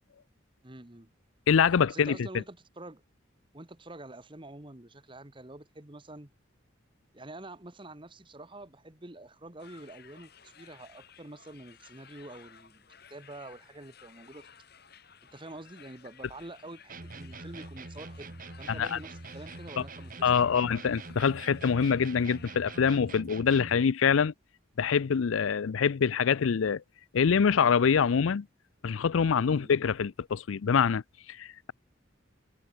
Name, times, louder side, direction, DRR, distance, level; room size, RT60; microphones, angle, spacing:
voice 1, 0.6-1.1 1.9-3.0 3.5-6.3 7.1-14.5 15.3-20.6 29.5-29.7, right 2 dB, 25° right, 1.5 m, -47 dB
voice 2, 1.5-2.2 18.7-19.0 20.2-24.3 24.8-26.8 27.1-28.5 28.8-31.0 31.3-31.7, left 6 dB, 85° left, 0.5 m, -25 dB
sound 1, 9.6-23.2, left 7 dB, 50° left, 5.0 m, -56 dB
sound 2, 16.9-23.9, right 2 dB, 45° right, 1.8 m, -44 dB
head